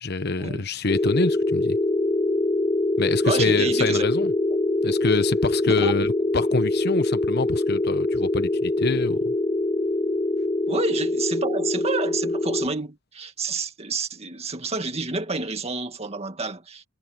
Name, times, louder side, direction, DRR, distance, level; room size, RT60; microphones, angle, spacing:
voice 1, 0.0-1.8 3.0-4.3 4.8-9.3, left 3 dB, 55° left, 1.0 m, -26 dB
sound 1, 0.9-12.7, left 2 dB, 25° left, 0.7 m, -24 dB
voice 2, 3.2-4.1 5.7-6.0 10.7-16.8, right 3 dB, 35° right, 2.1 m, -29 dB
head